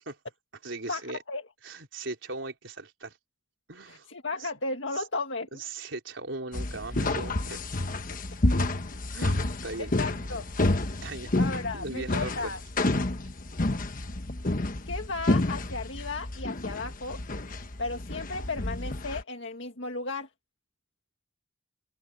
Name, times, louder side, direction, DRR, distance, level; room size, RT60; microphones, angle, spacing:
voice 1, 0.6-1.2 1.6-3.2 3.7-4.1 4.4-4.5 5.0-5.1 5.5-7.7 9.1-10.2 11.0-11.3 11.7-12.5, right 2 dB, 85° right, 3.9 m, -38 dB
voice 2, 3.9-5.6 9.8-10.4 11.4-12.6 14.9-17.2 17.8-20.3, left 3 dB, 80° left, 1.8 m, -34 dB
sound 1, 6.5-19.2, left 2 dB, 45° left, 1.2 m, -29 dB
open air
head